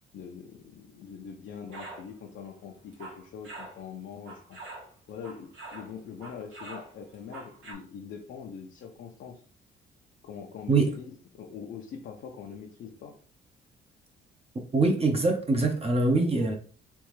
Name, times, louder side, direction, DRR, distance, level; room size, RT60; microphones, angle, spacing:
voice 1, 0.1-4.6 5.1-9.4 10.2-13.2, left 6 dB, 65° left, 0.7 m, -43 dB
sound 1, 1.7-2.1 2.8-3.8 4.3-5.9 6.2-7.7, right 2 dB, 90° right, 1.6 m, -44 dB
voice 2, 14.7-16.6, right 3 dB, 30° right, 0.8 m, -23 dB
3.5 x 3.1 x 3.2 m
cardioid pair, 90°, 20 cm